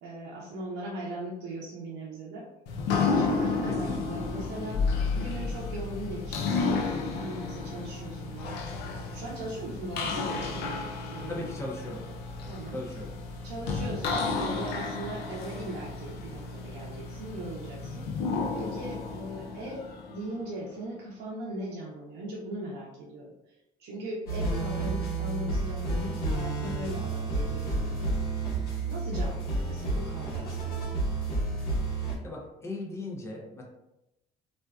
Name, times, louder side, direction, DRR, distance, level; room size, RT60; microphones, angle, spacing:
voice 1, 0.0-2.4 3.0-4.8 5.1-8.6 9.1-11.4 12.5-12.8 13.4-18.1 18.6-23.3 23.8-28.1 28.9-30.9, right 1 dB, 85° right, -5 dB, 0.6 m, -39 dB
sound 1, 2.7-20.5, left 4 dB, 80° left, 0.4 m, -32 dB
voice 2, 3.7-4.2 11.3-12.0 12.7-13.1 32.2-33.6, left 2 dB, 15° left, -1 dB, 0.5 m, -38 dB
sound 2, 24.3-32.2, right 2 dB, 65° left, 1.0 m, -30 dB
2.5 x 2.2 x 2.2 m, 0.89 s
cardioid pair, 110°, 17 cm